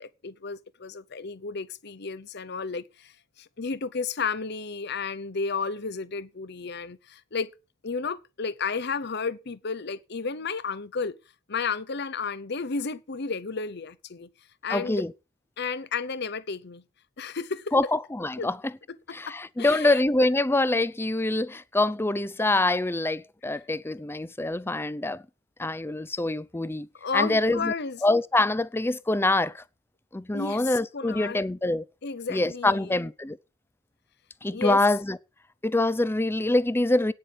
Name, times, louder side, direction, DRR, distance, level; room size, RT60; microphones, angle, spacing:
voice 1, 0.0-3.1 3.4-7.5 7.8-11.1 11.5-14.3 14.6-15.0 15.6-16.8 17.2-17.9 18.4-18.5 18.9-20.0 27.0-28.0 30.3-31.4 32.0-33.0 34.5-34.9, left 5 dB, 60° left, 0.9 m, -32 dB
voice 2, 14.7-15.1 17.7-18.6 19.1-25.2 25.6-26.9 27.1-27.7 28.0-29.6 30.1-31.8 32.3-33.4 34.4-35.2 35.6-37.1, left 2 dB, 10° left, 0.5 m, -25 dB
9.6 x 7.6 x 8.5 m
head